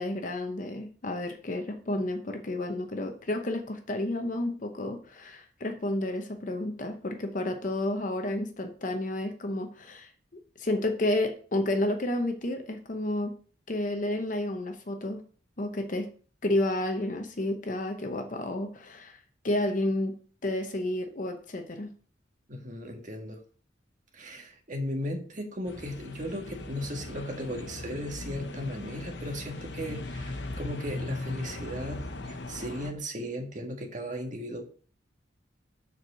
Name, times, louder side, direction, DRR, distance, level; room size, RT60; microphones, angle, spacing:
voice 1, 0.0-10.1 10.6-13.3 13.7-15.2 15.6-16.1 16.4-19.2 19.4-20.1 20.4-21.9, left 1 dB, 45° left, 5 dB, 0.8 m, -31 dB
voice 2, 22.5-23.4 24.1-34.7, equal, 45° right, 2 dB, 1.7 m, -36 dB
sound 1, 25.7-32.9, left 2 dB, 70° left, 1.0 m, -39 dB
7.2 x 4.7 x 6.3 m, 0.43 s
head